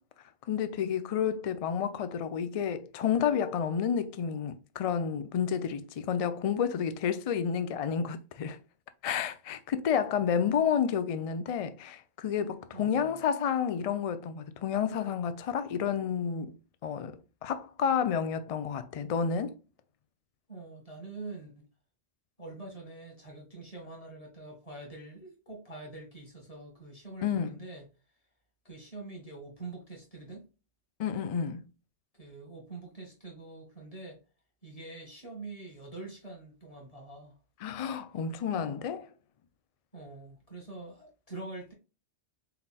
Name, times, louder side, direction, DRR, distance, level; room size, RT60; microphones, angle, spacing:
voice 1, 0.5-8.6 9.0-19.6 27.2-27.6 31.0-31.6 37.6-39.1, left 7 dB, 60° left, 0.3 m, -30 dB
voice 2, 12.7-13.2 20.5-21.7 22.4-27.8 28.7-30.4 32.2-34.2 34.6-37.4 39.9-41.7, right 3 dB, 35° left, 1.7 m, -45 dB
4.1 x 3.9 x 2.2 m
omnidirectional pair, 1.1 m